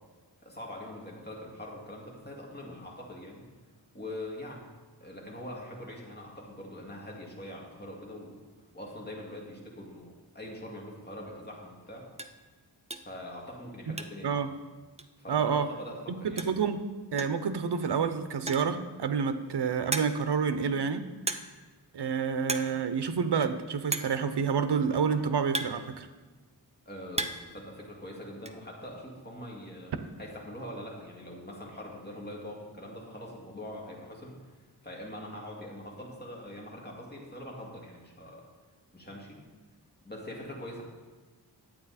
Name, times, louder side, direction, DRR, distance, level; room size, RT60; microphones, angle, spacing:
voice 1, 0.4-3.5 3.9-4.7 5.0-12.1 13.0-14.4 15.2-16.6 26.9-29.9 30.2-34.4 34.8-38.4 38.9-39.4 40.0-40.8, left 1 dB, 25° left, -2 dB, 2.3 m, -43 dB
sound 1, 11.7-11.8 12.1-12.4 12.9-13.2 13.5-14.4 14.6-14.7 15.0-15.1 16.1-16.2 16.4-16.7 17.2-17.5 18.3-18.8 19.3-19.4 19.9-20.4 21.3-21.7 21.9-22.2 22.4-22.8 23.0-23.1 23.9-24.2 25.0-26.4 26.8-27.6 27.8-28.5, right 3 dB, 15° right, 0.5 m, -35 dB
voice 2, 15.3-15.7 16.2-16.8 17.1-21.0 21.9-26.1, right 6 dB, 70° right, 10 dB, 0.8 m, -28 dB
11.0 x 8.6 x 4.2 m, 1.3 s
wide cardioid pair, 105°, 43 cm